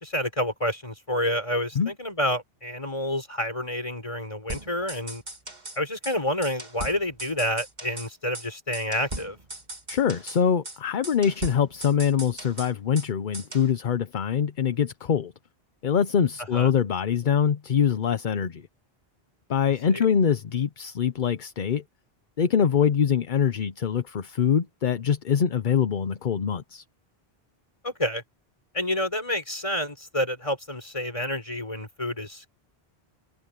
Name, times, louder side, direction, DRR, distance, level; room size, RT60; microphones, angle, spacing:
voice 1, 0.0-5.2 5.8-9.4 16.4-16.7 19.6-20.0 27.8-28.2 28.7-32.5, left 1 dB, 30° left, 4.4 m, -29 dB
sound 1, 4.5-5.8 6.0-6.2 6.4-8.1 8.3-8.5 8.7-10.4 10.6-10.8 11.0-13.1 13.3-13.7, right 2 dB, 45° right, 3.2 m, -38 dB
voice 2, 9.9-15.3 15.8-18.6 19.5-21.8 22.4-26.8, left 7 dB, 55° left, 0.9 m, -24 dB
omnidirectional pair, 1.0 m